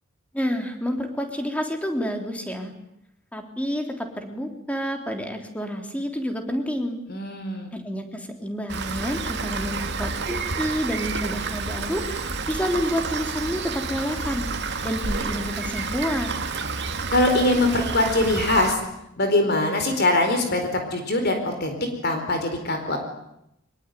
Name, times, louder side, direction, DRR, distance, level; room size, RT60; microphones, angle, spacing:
voice 1, 0.3-2.7 3.3-7.0 7.7-14.5 14.8-16.3, equal, 5° left, 4 dB, 3.6 m, -29 dB
voice 2, 7.1-7.7 17.1-18.8 19.2-21.7 22.0-23.0, left 2 dB, 50° left, 5 dB, 4.5 m, -22 dB
Rain, 8.7-18.8, right 4 dB, 50° right, 2.5 m, -30 dB
24.5 x 21.5 x 9.4 m, 0.82 s
head